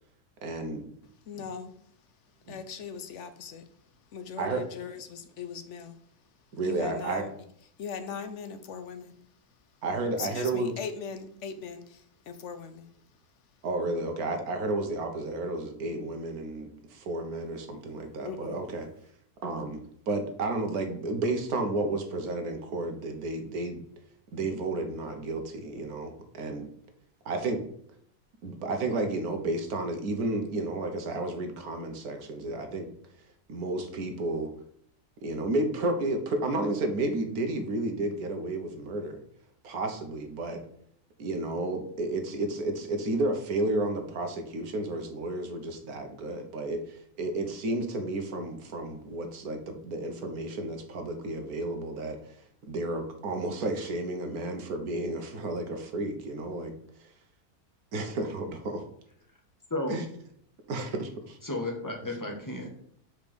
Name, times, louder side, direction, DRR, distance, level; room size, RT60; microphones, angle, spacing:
voice 1, 0.4-0.8 1.4-1.5 2.5-2.6 4.4-4.6 6.5-7.3 9.8-10.8 13.6-18.9 19.4-19.8 20.1-23.8 24.3-26.7 27.2-27.6 28.4-32.9 33.5-34.5 35.2-39.2 39.6-40.6 41.2-52.4 52.6-56.7 57.0-57.1 57.9-58.9 59.9-60.0 60.7-61.4, right 2 dB, 70° right, 1.5 m, -32 dB
voice 2, 1.3-1.7 2.5-3.7 4.1-6.0 6.6-7.3 7.8-9.1 10.2-12.9 18.2-18.6, left 6 dB, 60° left, 0.9 m, -39 dB
voice 3, 61.4-62.7, left 2 dB, 15° left, 1.4 m, -33 dB
5.2 x 4.8 x 6.1 m
omnidirectional pair, 1.7 m